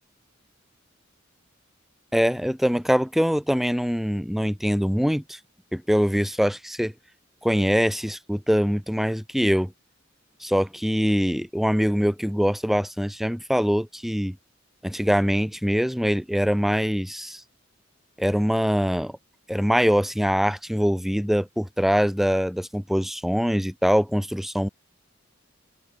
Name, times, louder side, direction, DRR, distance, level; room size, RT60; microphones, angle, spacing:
voice 1, 2.1-5.4 5.7-6.9 7.4-9.7 10.4-14.4 14.8-17.4 18.2-19.2 19.5-24.7, equal, ahead, 3.8 m, -23 dB
head